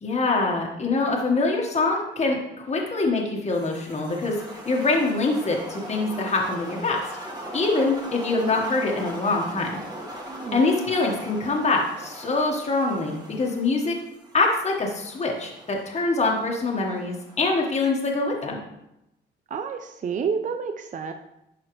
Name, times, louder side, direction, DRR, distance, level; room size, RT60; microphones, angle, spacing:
voice 1, 0.0-4.4 4.7-7.0 7.5-9.7 10.5-13.9 14.3-18.6, left 3 dB, 35° left, -1 dB, 1.3 m, -24 dB
sound 1, 3.5-17.9, right 1 dB, 20° right, 1.6 m, -40 dB
voice 2, 10.3-10.7 19.5-21.1, right 6 dB, 40° right, 7 dB, 0.5 m, -30 dB
11.0 x 4.1 x 3.1 m, 0.86 s
cardioid pair, 90°, 20 cm